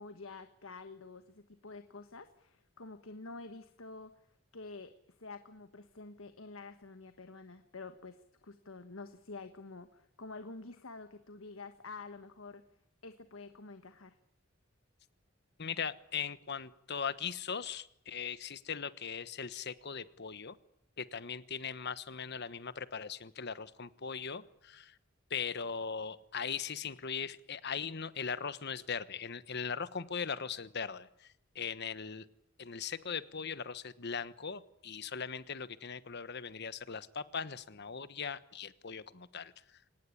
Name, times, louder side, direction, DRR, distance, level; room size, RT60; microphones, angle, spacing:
voice 1, 0.0-4.1 4.5-4.9 5.2-12.6 13.0-14.1, left 3 dB, 85° left, 9 dB, 1.3 m, -48 dB
voice 2, 15.6-20.6 21.0-25.0 25.3-32.3 32.6-39.8, left 6 dB, 55° left, 14 dB, 1.2 m, -39 dB
25.0 x 19.0 x 9.8 m, 0.76 s
head